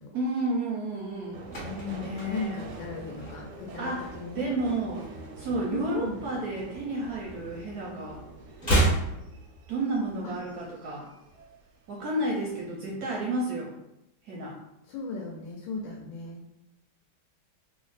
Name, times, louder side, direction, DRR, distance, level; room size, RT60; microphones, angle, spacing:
voice 1, 0.1-1.4 1.9-2.5 3.8-4.1 4.3-5.0 5.4-8.2 9.7-11.1 11.9-13.8 14.2-14.6, right 2 dB, 70° right, -3 dB, 0.9 m, -31 dB
sound 1, 1.2-3.8 4.1-4.4 4.7-6.1 6.4-10.1 10.4-10.5, right 2 dB, 30° left, 0.8 m, -31 dB
Subway metro underground, 1.3-12.1 12.4-13.1 13.4-13.5, right 3 dB, 85° right, 1.4 m, -46 dB
voice 2, 1.6-4.5 5.7-6.2 10.2-10.4 14.9-16.5, left 4 dB, 75° left, 0 dB, 1.2 m, -36 dB
3.4 x 2.0 x 3.9 m, 0.87 s
omnidirectional pair, 2.2 m